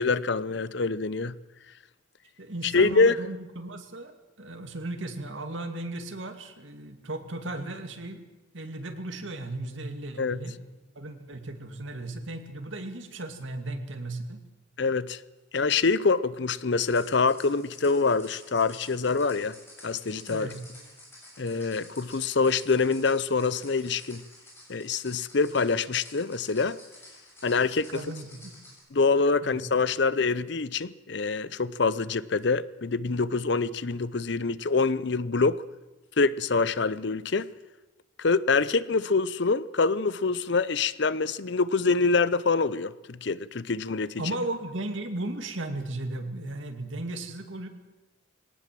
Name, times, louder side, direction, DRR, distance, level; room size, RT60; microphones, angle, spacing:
voice 1, 0.0-1.3 2.6-3.2 10.2-10.4 14.8-15.2 15.5-19.6 19.8-20.5 21.4-24.2 24.7-26.8 27.4-28.0 28.9-35.6 36.2-37.5 38.2-44.2, left 4 dB, 60° left, 0.6 m, -25 dB
voice 2, 2.4-8.2 8.5-10.6 11.0-14.4 20.3-20.6 27.9-28.5 29.4-29.6 44.2-47.7, right 2 dB, 70° right, 2.4 m, -36 dB
sound 1, 16.8-28.8, left 1 dB, 10° left, 6.9 m, -51 dB
20.0 x 18.5 x 7.6 m
head